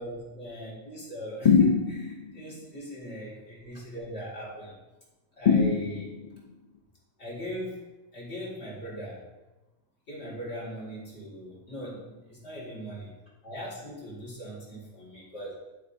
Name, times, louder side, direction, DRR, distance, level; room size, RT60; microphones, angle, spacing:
voice 1, 0.0-4.7 5.4-6.1 7.2-7.9 8.1-9.2 10.1-13.1 13.4-15.6, equal, 50° left, -6 dB, 2.1 m, -39 dB
sound 1, 1.5-2.3 5.5-6.4, left 6 dB, 85° left, 0.3 m, -22 dB
10.0 x 5.1 x 2.6 m, 1.1 s
omnidirectional pair, 1.5 m